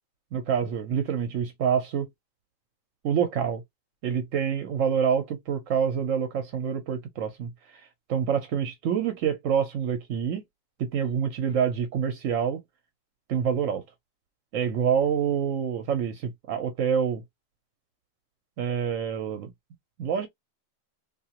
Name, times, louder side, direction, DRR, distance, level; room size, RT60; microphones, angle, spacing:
voice 1, 0.3-2.1 3.0-3.6 4.0-7.5 8.1-10.4 10.8-12.6 13.3-13.8 14.5-17.2 18.6-19.5 20.0-20.3, right 7 dB, 75° right, 1.0 m, -26 dB
2.8 x 2.6 x 2.9 m
omnidirectional pair, 1.4 m